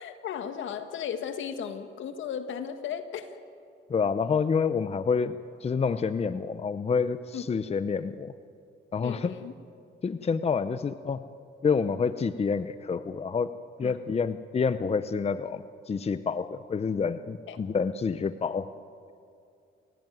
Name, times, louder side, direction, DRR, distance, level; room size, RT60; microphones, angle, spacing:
voice 1, 0.0-3.4 7.3-7.4 9.0-9.5 13.8-14.0 17.5-17.6, left 8 dB, 75° left, 8 dB, 1.8 m, -35 dB
voice 2, 3.9-8.3 8.9-9.3 10.0-11.2 11.6-13.5 13.8-18.7, left 5 dB, 30° left, 12 dB, 0.7 m, -28 dB
28.5 x 16.5 x 9.3 m, 2.4 s
cardioid pair, 90°, 20 cm